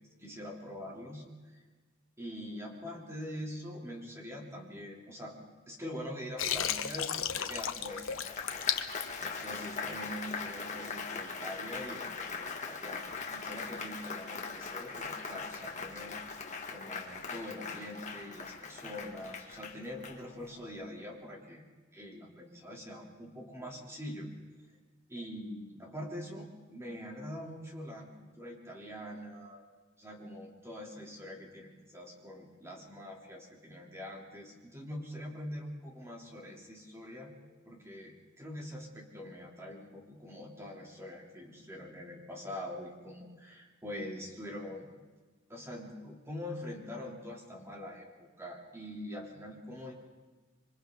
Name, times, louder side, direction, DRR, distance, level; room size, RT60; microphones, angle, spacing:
voice 1, 0.2-1.6 2.2-5.4 5.7-8.6 9.2-16.1 16.7-21.6 21.9-24.3 25.1-29.6 30.0-37.3 37.7-44.9 45.5-49.9, left 1 dB, 15° right, -2 dB, 3.3 m, -44 dB
Water, 6.4-9.8, left 9 dB, 75° left, 1.0 m, -33 dB
Applause, 7.9-20.6, left 4 dB, 35° left, 1.9 m, -41 dB
26.5 x 25.0 x 3.9 m, 1.3 s
head